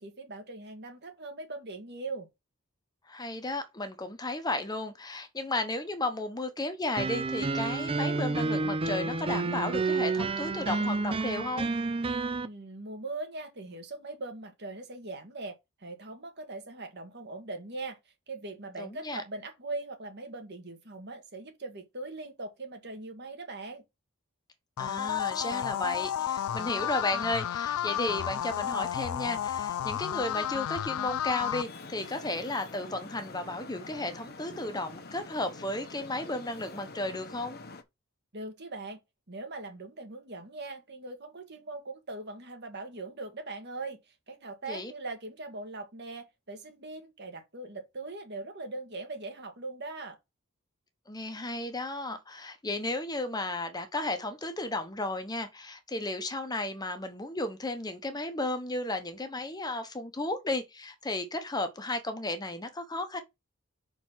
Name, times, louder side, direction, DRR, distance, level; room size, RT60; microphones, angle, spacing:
voice 1, 0.0-2.3 12.4-15.6 15.8-18.0 18.3-23.8 38.3-39.0 39.3-50.2, right 2 dB, 55° right, 1.8 m, -40 dB
voice 2, 3.1-11.7 18.8-19.2 24.8-37.6 44.7-44.9 51.1-63.2, left 2 dB, 20° left, 1.0 m, -34 dB
sound 1, 7.0-12.5, right 3 dB, 25° right, 0.5 m, -30 dB
sound 2, 24.8-31.6, left 10 dB, 90° left, 0.3 m, -32 dB
Traffic noise roadway noise, 31.6-37.8, left 3 dB, 50° left, 1.0 m, -46 dB
5.8 x 4.6 x 5.7 m
head